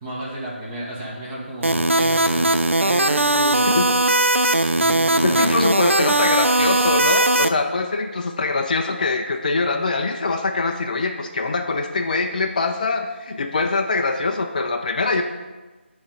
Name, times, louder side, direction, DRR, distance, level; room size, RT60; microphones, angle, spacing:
voice 1, 0.0-2.5 2.8-3.8 4.8-5.5, right 1 dB, 15° right, -5 dB, 1.0 m, -32 dB
sound 1, 1.6-7.5, right 1 dB, 80° right, 0.4 m, -19 dB
voice 2, 5.2-15.2, left 3 dB, 40° left, 4 dB, 0.4 m, -23 dB
8.4 x 3.1 x 5.1 m, 1.2 s
figure-of-eight pair, 155°, 7 cm